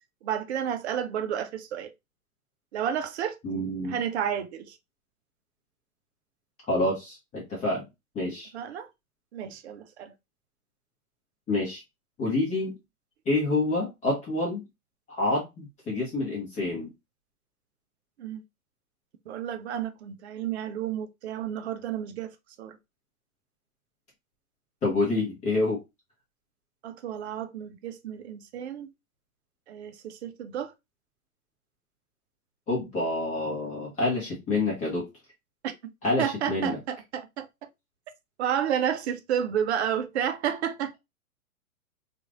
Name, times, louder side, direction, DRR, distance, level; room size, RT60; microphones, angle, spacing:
voice 1, 0.2-1.9 2.7-3.4 3.9-4.8 8.5-8.9 9.3-10.1 18.2-18.4 19.3-22.3 22.6-22.8 26.8-28.9 29.7-30.7 35.6-35.7 36.2-37.5 38.4-41.0, right 9 dB, 50° right, 0.6 m, -31 dB
voice 2, 3.4-4.0 6.7-7.9 8.1-8.5 11.5-11.8 12.2-12.8 13.3-14.7 15.1-16.9 24.8-25.8 32.7-35.0 36.0-36.8, left 2 dB, 15° left, 0.9 m, -27 dB
3.0 x 2.5 x 2.5 m
hypercardioid pair, 125°, 44 cm